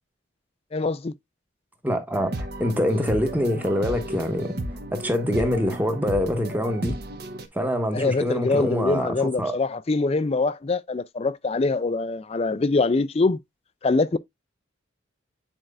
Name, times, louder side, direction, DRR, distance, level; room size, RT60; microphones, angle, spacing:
voice 1, 0.7-1.1 7.9-13.4 13.8-14.2, left 3 dB, 30° left, 0.4 m, -24 dB
voice 2, 1.8-4.5 4.9-7.0 7.5-9.6, equal, 10° right, 1.2 m, -25 dB
sound 1, 2.1-7.5, right 1 dB, 50° right, 1.2 m, -34 dB
8.8 x 4.5 x 2.5 m
head